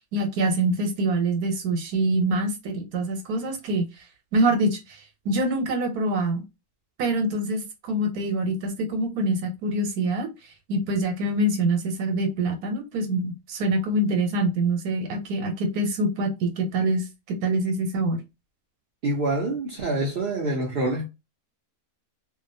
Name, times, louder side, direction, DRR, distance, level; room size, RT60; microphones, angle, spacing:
voice 1, 0.1-3.9 4.3-6.4 7.0-10.3 10.7-18.2, right 1 dB, 80° right, 1.2 m, -25 dB
voice 2, 19.0-21.1, right 2 dB, 65° right, 0.5 m, -26 dB
2.6 x 2.1 x 2.5 m
omnidirectional pair, 1.6 m